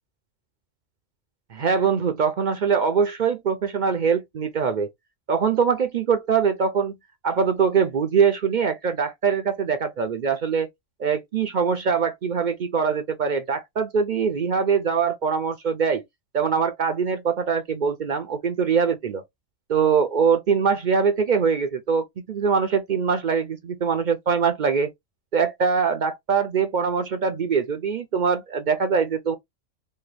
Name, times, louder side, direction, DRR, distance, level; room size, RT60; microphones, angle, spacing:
voice 1, 1.5-4.9 5.3-7.0 7.2-10.7 11.0-16.0 16.3-19.2 19.7-24.9 25.3-29.4, right 6 dB, 60° right, 0.5 m, -23 dB
4.3 x 2.2 x 3.2 m
omnidirectional pair, 1.4 m